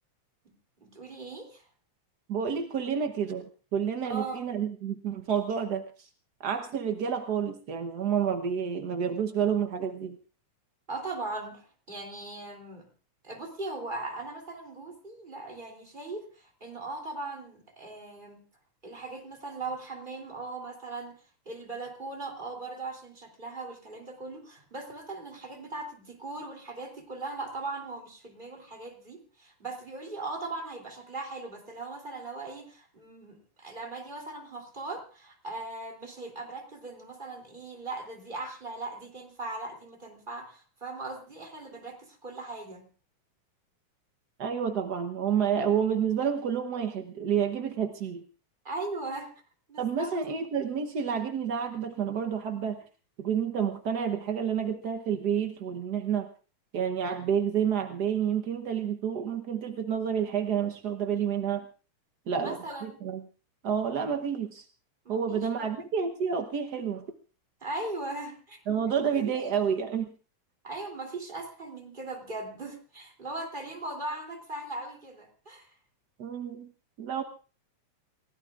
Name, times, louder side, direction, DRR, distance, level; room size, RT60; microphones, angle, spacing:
voice 1, 0.4-1.6 4.1-4.4 10.9-12.9 13.2-18.4 18.8-21.2 21.4-42.9 48.6-49.3 49.7-50.2 62.4-63.0 65.0-65.8 67.6-68.6 68.9-69.3 70.6-75.7, right 2 dB, 15° right, 2 dB, 3.2 m, -39 dB
voice 2, 2.3-3.5 3.7-6.1 6.4-10.2 44.4-48.2 49.8-52.8 53.2-56.3 56.7-61.6 62.3-63.2 63.6-64.6 65.1-67.0 68.7-70.1 76.2-76.7 77.0-77.2, right 7 dB, 75° right, 6 dB, 0.9 m, -29 dB
29.0 x 17.0 x 2.5 m, 0.37 s
omnidirectional pair, 3.4 m